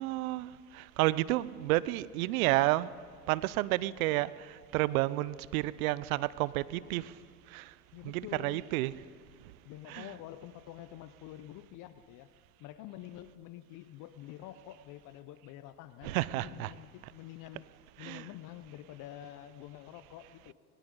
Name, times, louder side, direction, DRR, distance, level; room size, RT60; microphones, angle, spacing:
voice 1, 0.0-2.9 3.3-7.2 7.5-7.7 8.0-9.0 9.4-9.5 9.9-10.1 16.0-16.7 18.0-18.3, right 18 dB, 60° right, 20 dB, 0.6 m, -31 dB
voice 2, 7.9-8.7 9.6-12.3 12.6-17.7 18.0-20.5, left 13 dB, 40° left, 13 dB, 0.7 m, -47 dB
19.5 x 18.0 x 3.8 m, 2.1 s
hypercardioid pair, 90°, 48 cm